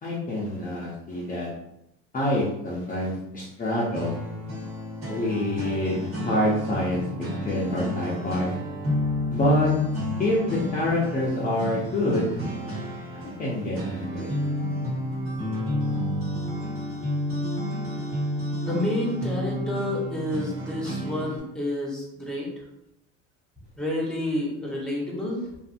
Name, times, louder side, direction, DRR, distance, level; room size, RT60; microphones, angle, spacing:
voice 1, 0.0-1.5 2.1-4.2 5.1-7.0 7.4-8.6 9.3-9.7 10.2-12.4 13.1-14.3, left 1 dB, 25° left, -6 dB, 0.7 m, -26 dB
sound 1, 3.9-21.4, left 1 dB, 40° right, 1.4 m, -30 dB
voice 2, 18.6-22.6 23.8-25.5, left 1 dB, ahead, -3 dB, 1.0 m, -29 dB
2.6 x 2.5 x 2.5 m, 0.82 s
supercardioid pair, 95°, 33 cm